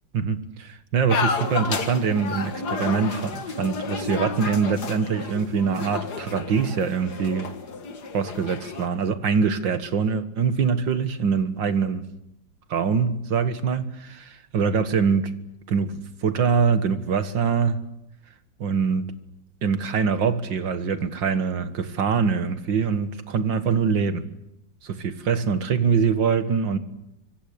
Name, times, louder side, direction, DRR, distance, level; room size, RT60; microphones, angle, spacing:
voice 1, 0.1-7.5 8.1-12.1 12.7-15.3 15.7-17.8 18.6-19.1 19.6-24.3 24.8-26.8, right 6 dB, 80° right, 11 dB, 2.3 m, -24 dB
sound 1, 1.1-8.9, left 5 dB, 60° left, 2.2 m, -31 dB
25.0 x 24.5 x 8.5 m, 0.80 s
omnidirectional pair, 2.0 m